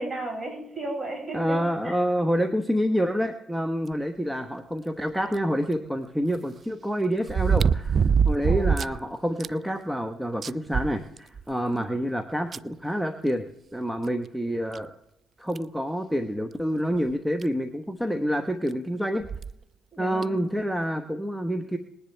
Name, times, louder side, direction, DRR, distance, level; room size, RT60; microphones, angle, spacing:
voice 1, 0.0-1.6 1.8-2.0 8.5-8.8 11.7-11.9 19.9-20.4, right 2 dB, 25° right, 0 dB, 6.4 m, -34 dB
voice 2, 1.3-13.5 13.7-14.9 15.4-19.3 20.0-21.8, equal, 5° right, 6 dB, 1.0 m, -27 dB
sound 1, 5.3-5.4 7.3-9.0 9.4-9.5 10.0-10.1 10.4-11.5 12.5-12.6 14.1-14.2 14.7-14.8 15.5-15.8 17.1-17.2 17.4-17.5 19.2-19.5 20.2-20.3, right 6 dB, 45° right, 0.3 m, -23 dB
20.0 x 10.5 x 3.4 m, 0.82 s
supercardioid pair, 70°, 0 cm